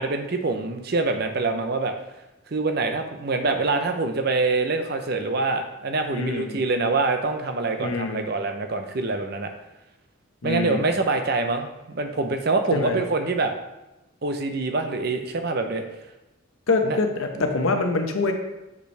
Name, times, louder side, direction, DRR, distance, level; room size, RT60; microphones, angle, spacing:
voice 1, 0.0-1.9 2.5-9.5 10.4-13.5 14.2-15.8 16.8-17.0 17.4-17.5, right 3 dB, 50° right, 6 dB, 0.6 m, -25 dB
voice 2, 6.1-6.6 7.8-8.3 10.4-10.9 12.7-13.0 16.7-18.3, left 3 dB, 80° left, 5 dB, 0.8 m, -25 dB
6.8 x 5.3 x 3.3 m, 0.99 s
head